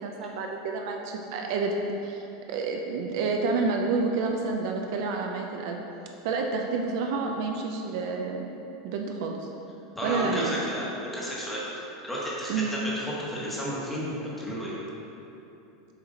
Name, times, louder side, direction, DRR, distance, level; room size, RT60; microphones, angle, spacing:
voice 1, 0.0-1.7 2.0-5.8 6.2-8.5 8.8-9.5 10.0-10.6 12.5-12.7, right 4 dB, 55° right, 2 dB, 0.5 m, -29 dB
voice 2, 10.0-12.5 12.9-14.7, equal, 5° left, -6 dB, 1.2 m, -33 dB
7.2 x 4.7 x 3.8 m, 2.9 s
supercardioid pair, 165°, 2 cm